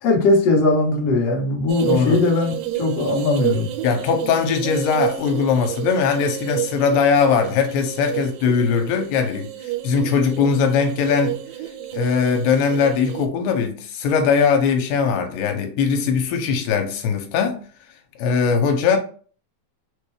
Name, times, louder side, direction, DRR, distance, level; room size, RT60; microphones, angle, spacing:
voice 1, 0.0-2.5 2.8-3.7, left 3 dB, 65° left, 1.6 m, -19 dB
sound 1, 1.7-13.3, right 13 dB, 85° right, 2.6 m, -30 dB
voice 2, 1.9-2.2 3.8-9.5 9.8-11.4 11.9-17.6 18.2-19.0, left 6 dB, 85° left, 2.6 m, -20 dB
6.5 x 2.3 x 3.3 m
omnidirectional pair, 4.7 m